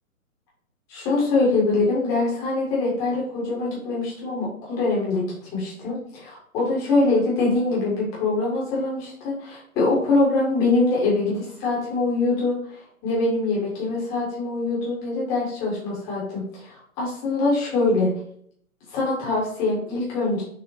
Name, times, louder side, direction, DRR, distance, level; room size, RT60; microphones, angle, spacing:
voice 1, 0.9-5.2 5.5-18.1 18.9-20.4, left 3 dB, 10° left, -6 dB, 0.7 m, -23 dB
5.9 x 2.1 x 2.6 m, 0.64 s
figure-of-eight pair, 140°, 43 cm